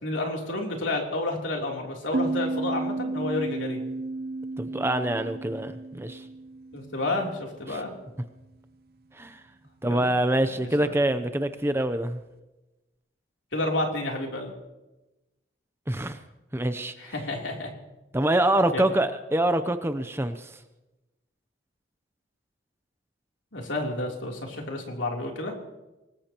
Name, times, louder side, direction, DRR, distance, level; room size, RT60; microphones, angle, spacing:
voice 1, 0.0-3.8 6.7-7.9 9.9-10.1 10.6-10.9 13.5-14.5 17.0-17.7 18.7-18.9 23.5-25.5, left 2 dB, 80° left, 0 dB, 3.3 m, -30 dB
sound 1, 2.1-7.5, right 2 dB, 50° right, 0.5 m, -33 dB
voice 2, 4.6-6.2 7.7-7.8 9.1-9.4 9.8-12.2 15.9-16.2 16.5-16.9 18.1-20.6, right 1 dB, 15° right, 10 dB, 0.6 m, -25 dB
24.5 x 19.5 x 3.0 m, 1.0 s
head